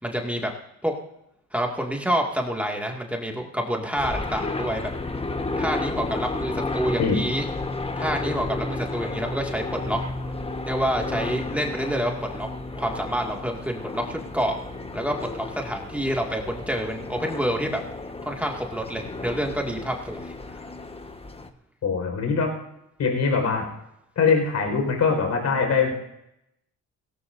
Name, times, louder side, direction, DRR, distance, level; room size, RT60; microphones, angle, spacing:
voice 1, 0.0-0.5 0.8-1.0 1.5-4.9 5.6-7.4 8.0-10.3 10.7-12.5 12.8-14.6 14.9-17.8 18.3-20.6, equal, 5° right, 1 dB, 2.1 m, -28 dB
sound 1, 4.0-21.5, left 2 dB, 20° left, 1.2 m, -32 dB
voice 2, 21.8-22.5 23.0-23.6 24.2-25.9, left 5 dB, 65° left, 3 dB, 4.7 m, -22 dB
17.5 x 17.0 x 2.6 m, 0.83 s
cardioid pair, 90°, 30 cm